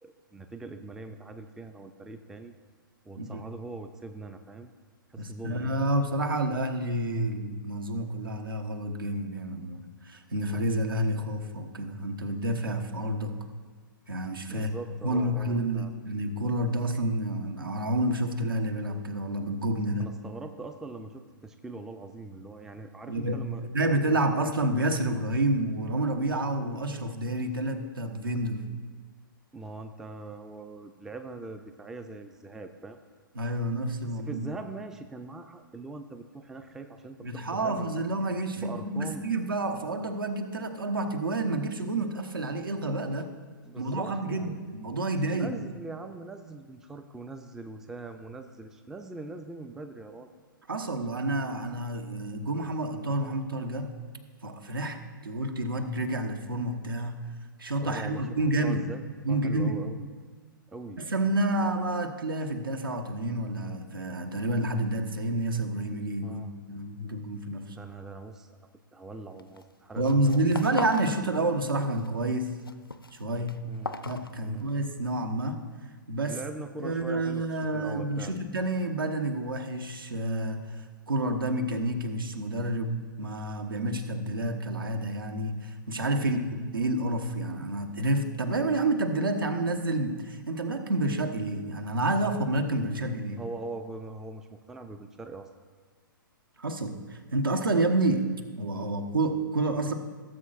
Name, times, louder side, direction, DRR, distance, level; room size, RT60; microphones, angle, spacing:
voice 1, 0.0-2.5 3.1-4.7 5.1-5.8 14.5-15.9 20.0-23.7 29.5-33.0 34.1-38.0 38.6-39.3 43.6-44.6 45.3-50.3 57.8-60.1 60.7-61.0 66.2-66.5 67.7-68.5 68.9-70.5 73.6-73.9 74.4-74.7 76.3-77.4 77.7-78.4 86.2-86.4 93.4-95.5, right 3 dB, 5° right, 8 dB, 0.4 m, -42 dB
voice 2, 5.2-13.4 14.1-14.7 15.0-20.1 23.1-28.7 33.3-34.4 37.2-43.3 43.8-45.5 50.7-53.9 54.4-57.2 57.6-58.8 59.2-59.8 61.0-67.8 70.0-72.5 73.1-73.6 74.0-75.6 76.1-76.4 76.8-93.4 96.6-98.3 98.6-99.9, right 1 dB, 75° right, 5 dB, 1.2 m, -29 dB
sound 1, 69.4-69.7 70.0-71.1 71.4-72.1 72.4-74.9, left 3 dB, 90° left, 0.6 m, -39 dB
17.5 x 7.7 x 2.5 m, 1.5 s
figure-of-eight pair, 115°, 12 cm